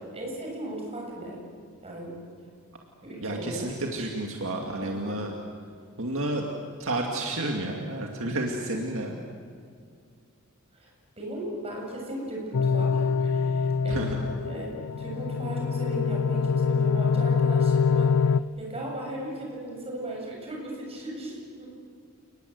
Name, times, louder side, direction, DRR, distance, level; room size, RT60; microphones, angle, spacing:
voice 1, 0.0-1.4 1.8-2.2 3.0-3.7 4.8-5.4 10.7-10.9 11.2-18.1 18.6-21.7, right 1 dB, 25° right, -1 dB, 7.4 m, -37 dB
voice 2, 3.2-5.3 6.0-6.4 6.8-9.2 13.9-14.2, right 1 dB, 60° right, 1 dB, 2.2 m, -30 dB
sound 1, 12.5-18.4, left 5 dB, 80° left, 0.5 m, -24 dB
29.5 x 20.5 x 8.0 m, 2.3 s
head